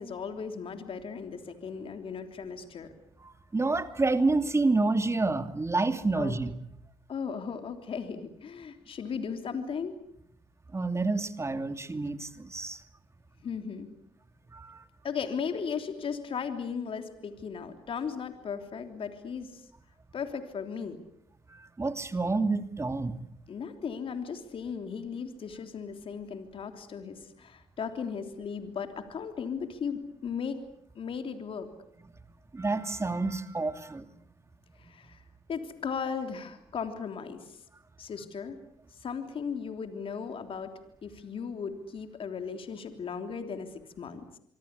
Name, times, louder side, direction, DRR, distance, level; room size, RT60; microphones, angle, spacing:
voice 1, 0.0-2.9 6.1-6.4 7.1-10.0 13.4-13.9 15.0-19.7 20.1-21.0 23.5-30.6 30.9-31.7 34.8-35.2 35.5-37.6 38.0-38.6 38.9-40.7 41.0-44.4, left 6 dB, 60° left, 7 dB, 3.4 m, -36 dB
voice 2, 3.2-6.5 10.7-12.8 14.5-14.8 21.5-23.2 32.5-34.1, right 3 dB, 25° right, 9 dB, 2.8 m, -28 dB
25.0 x 25.0 x 8.4 m, 0.70 s
supercardioid pair, 55°, 11 cm